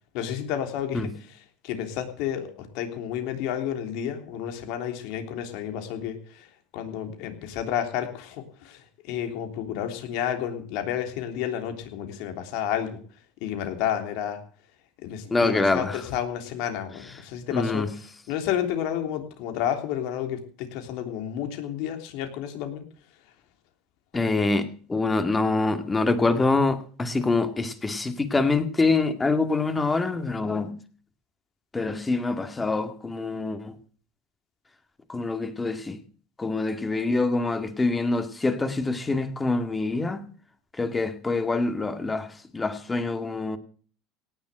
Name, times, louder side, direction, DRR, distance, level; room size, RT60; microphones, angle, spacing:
voice 1, 0.1-1.1 1.6-6.2 6.7-8.8 9.1-13.0 13.4-14.4 15.0-17.8 18.3-20.4 20.7-22.8, left 10 dB, 70° left, 6 dB, 3.3 m, -30 dB
voice 2, 15.3-16.0 17.5-17.9 24.1-30.8 31.7-33.8 35.1-36.0 36.4-40.2 40.8-42.3 42.5-43.6, left 3 dB, 15° left, 8 dB, 2.1 m, -25 dB
18.0 x 7.3 x 7.9 m, 0.42 s
supercardioid pair, 100°, 0 cm